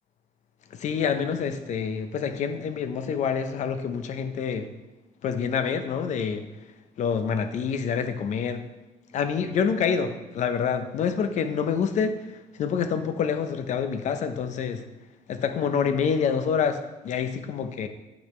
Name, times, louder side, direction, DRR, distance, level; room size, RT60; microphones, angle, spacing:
voice 1, 0.8-4.7 5.2-6.5 7.0-8.7 9.1-12.2 12.6-14.9 15.3-17.9, left 6 dB, 65° left, 9 dB, 0.7 m, -27 dB
8.5 x 5.1 x 3.2 m, 1.0 s
supercardioid pair, 70°, 13 cm